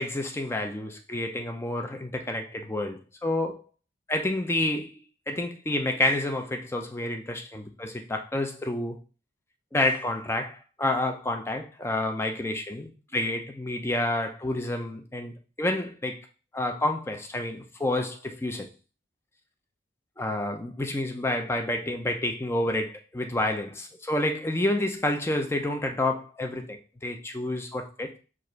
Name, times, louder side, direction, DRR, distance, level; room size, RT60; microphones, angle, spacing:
voice 1, 0.0-3.6 4.1-4.9 5.3-9.0 9.7-16.3 16.5-18.7 20.2-28.2, left 1 dB, 10° left, 4 dB, 0.4 m, -29 dB
4.8 x 2.5 x 4.4 m, 0.35 s
head